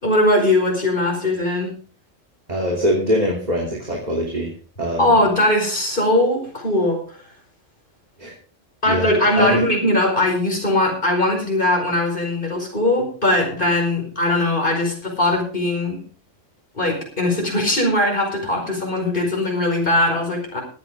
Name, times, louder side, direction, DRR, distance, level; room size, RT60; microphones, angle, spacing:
voice 1, 0.0-1.7 5.0-7.2 8.8-16.0 16.7-20.6, left 1 dB, 45° left, 1 dB, 5.1 m, -20 dB
voice 2, 2.5-4.5 4.8-5.2 8.2-8.3 8.9-9.6, equal, 35° right, -2 dB, 3.3 m, -23 dB
22.0 x 9.0 x 3.7 m, 0.38 s
omnidirectional pair, 1.3 m